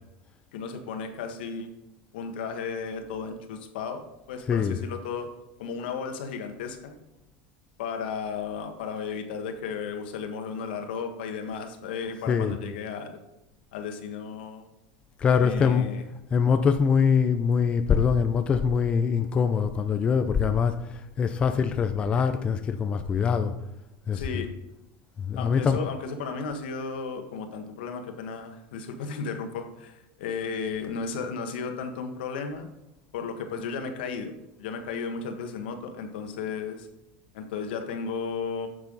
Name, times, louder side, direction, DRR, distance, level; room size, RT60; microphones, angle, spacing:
voice 1, 0.5-1.7 2.1-5.3 5.6-6.9 7.8-13.2 13.7-14.7 15.4-16.0 24.1-24.5 25.4-32.7 33.1-34.3 34.6-36.9 37.3-38.7, left 5 dB, 80° left, 5 dB, 1.5 m, -34 dB
voice 2, 4.5-4.8 12.3-12.5 15.2-15.9 16.3-23.5 24.1-24.4 25.2-25.8, left 6 dB, 20° left, 8 dB, 0.5 m, -23 dB
9.8 x 6.8 x 4.0 m, 0.92 s
supercardioid pair, 155°, 5 cm